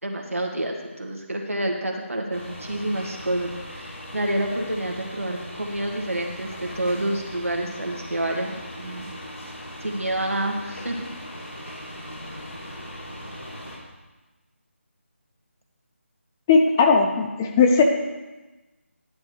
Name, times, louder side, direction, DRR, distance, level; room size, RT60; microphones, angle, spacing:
voice 1, 0.0-6.5 6.7-9.1 9.8-11.1, right 1 dB, 85° right, 1 dB, 2.0 m, -28 dB
sound 1, 2.3-13.8, equal, 85° left, 3.5 m, -39 dB
voice 2, 16.5-17.8, left 5 dB, 15° left, 4 dB, 0.5 m, -18 dB
11.5 x 9.4 x 3.3 m, 1.1 s
figure-of-eight pair, 160°, 7 cm